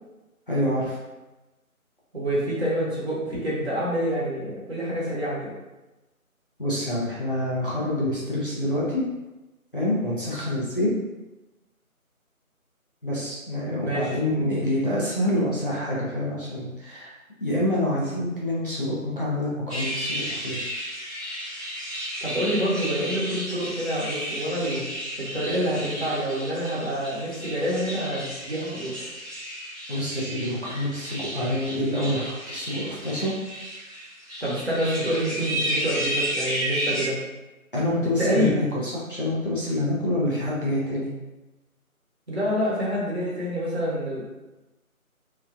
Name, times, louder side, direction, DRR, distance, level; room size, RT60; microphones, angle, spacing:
voice 1, 0.5-1.0 6.6-9.0 9.7-10.9 13.0-17.1 17.4-20.6 29.9-33.3 37.7-41.1, left 1 dB, 40° left, -8 dB, 0.6 m, -27 dB
voice 2, 2.1-5.5 13.8-14.1 22.2-24.8 25.2-28.9 34.4-37.2 38.0-38.5 42.3-44.2, equal, 45° right, -7 dB, 1.0 m, -27 dB
sound 1, 19.7-37.1, right 1 dB, ahead, 0.7 m, -33 dB
2.9 x 2.4 x 2.4 m, 1.1 s
figure-of-eight pair, 165°, 43 cm